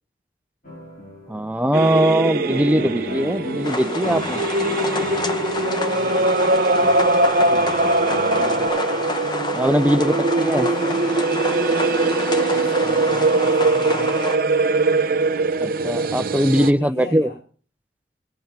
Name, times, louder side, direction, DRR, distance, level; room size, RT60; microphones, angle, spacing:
sound 1, 0.6-8.7, equal, 50° left, 4.2 m, -36 dB
voice 1, 1.3-4.4 9.5-10.7 15.6-17.3, equal, 10° right, 12 dB, 0.5 m, -20 dB
sound 2, 1.7-16.7, right 2 dB, 55° right, 0.8 m, -21 dB
sound 3, 3.6-14.4, left 2 dB, 25° left, 1.0 m, -29 dB
voice 2, 5.9-9.1 10.4-11.2 12.5-14.2 16.6-17.4, left 2 dB, 70° left, 4 dB, 1.5 m, -41 dB
18.5 x 7.6 x 5.8 m, 0.42 s
head